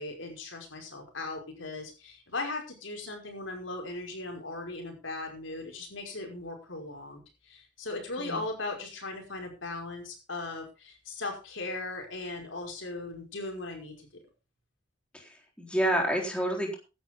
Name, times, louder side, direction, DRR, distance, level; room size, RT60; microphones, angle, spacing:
voice 1, 0.0-14.1, left 2 dB, 85° left, 2 dB, 5.5 m, -38 dB
voice 2, 15.1-16.7, right 1 dB, 5° left, 0 dB, 3.9 m, -29 dB
16.0 x 11.0 x 3.8 m, 0.30 s
head